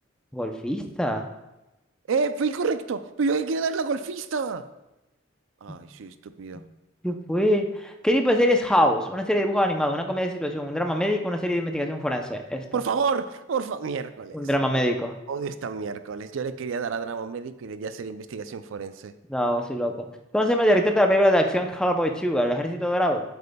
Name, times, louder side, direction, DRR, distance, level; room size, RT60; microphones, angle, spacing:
voice 1, 0.3-1.3 5.7-5.8 6.5-6.6 7.0-12.6 14.3-15.1 19.3-19.9 20.3-23.2, equal, 5° left, 4 dB, 0.5 m, -23 dB
voice 2, 2.1-4.7 5.6-6.6 12.7-14.4 15.3-19.1, right 5 dB, 75° right, 12 dB, 0.4 m, -29 dB
8.5 x 7.9 x 2.2 m, 0.98 s
head